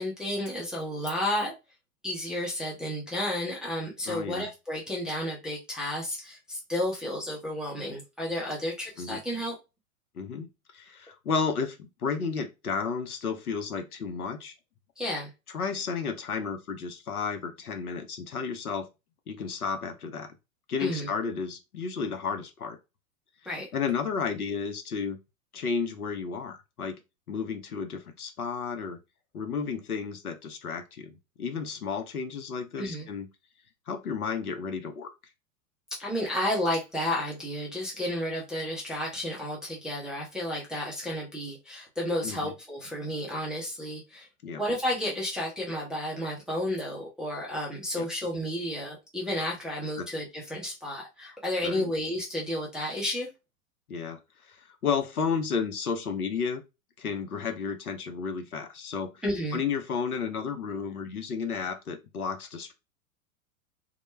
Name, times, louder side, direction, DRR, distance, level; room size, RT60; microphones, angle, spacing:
voice 1, 0.0-1.5 2.0-9.5 15.0-15.3 20.8-21.1 23.5-23.7 32.8-33.1 36.0-44.3 44.6-53.3 59.2-59.6, left 1 dB, ahead, 0.4 m, -32 dB
voice 2, 4.1-4.5 9.0-9.2 10.2-10.5 10.7-14.5 15.5-18.9 19.3-20.3 20.7-22.8 23.7-25.2 25.5-27.0 27.3-29.0 29.3-33.3 33.9-35.1 42.2-42.5 44.4-44.6 48.0-48.1 50.0-50.1 51.6-51.9 53.9-54.2 54.5-54.6 54.8-56.6 57.0-59.2 59.5-62.7, left 5 dB, 85° left, 0.7 m, -32 dB
2.2 x 2.1 x 3.1 m
figure-of-eight pair, 105°, 43 cm